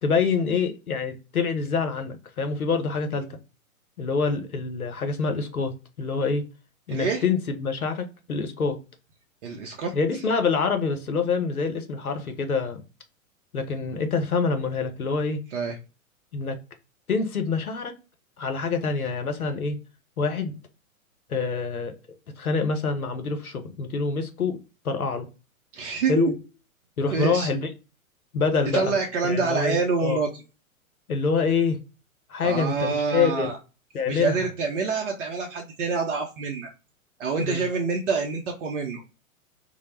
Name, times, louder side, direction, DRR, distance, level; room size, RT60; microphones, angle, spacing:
voice 1, 0.0-3.2 4.0-5.7 6.0-6.4 6.9-8.8 9.9-12.8 13.5-15.4 16.3-16.6 17.1-17.9 18.4-19.8 20.2-20.6 21.3-21.9 22.4-24.6 24.8-25.3 26.1-26.3 27.0-27.7 28.3-29.0 29.2-30.2 31.1-31.8 32.3-33.5 33.9-34.5 37.4-37.7, left 5 dB, 90° left, 6 dB, 0.6 m, -26 dB
voice 2, 6.9-7.2 9.4-9.9 15.5-15.8 25.7-26.3 27.1-27.5 28.7-30.3 32.4-33.6 34.1-36.7 37.2-39.0, right 4 dB, 55° right, 1 dB, 0.6 m, -26 dB
2.0 x 2.0 x 3.0 m, 0.31 s
figure-of-eight pair, 105°, 42 cm